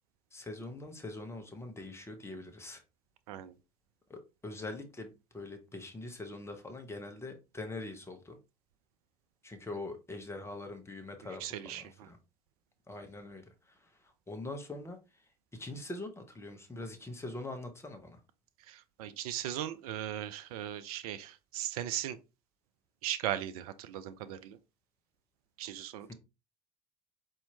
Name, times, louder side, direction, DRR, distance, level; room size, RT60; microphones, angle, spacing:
voice 1, 0.3-2.8 4.1-8.4 9.4-12.2 12.9-13.4 14.3-15.0 15.6-18.2, left 2 dB, 15° left, 1.0 m, -43 dB
voice 2, 11.4-12.1 18.7-22.2 23.0-24.6 25.6-26.1, right 12 dB, 70° right, 0.4 m, -38 dB
4.2 x 2.8 x 2.8 m
hypercardioid pair, 65°, 20 cm